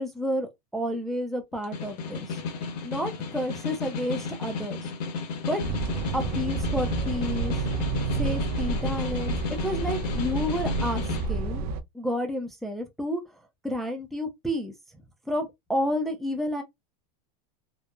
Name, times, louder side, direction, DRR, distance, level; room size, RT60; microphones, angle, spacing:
voice 1, 0.0-2.4 2.8-4.9 5.5-5.6 6.1-7.5 8.2-9.4 9.6-11.6 11.9-13.2 13.6-14.7 15.3-16.6, equal, ahead, 0.4 m, -30 dB
Snare drum, 1.5-11.3, left 5 dB, 75° left, 1.1 m, -33 dB
sound 1, 5.6-11.8, right 4 dB, 70° right, 0.4 m, -30 dB
3.0 x 2.0 x 2.2 m
supercardioid pair, 135°, 21 cm